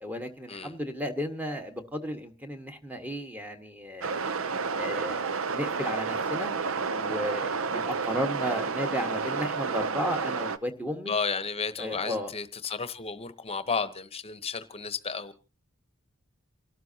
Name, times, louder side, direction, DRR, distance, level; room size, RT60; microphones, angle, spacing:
voice 1, 0.0-4.2 4.8-6.5 6.9-11.1 11.8-12.3, equal, 10° right, 5 dB, 1.5 m, -34 dB
sound 1, 4.0-10.6, right 5 dB, 70° right, 0.7 m, -30 dB
voice 2, 11.1-15.3, left 5 dB, 30° left, 12 dB, 1.0 m, -32 dB
28.5 x 12.5 x 2.8 m, 0.32 s
head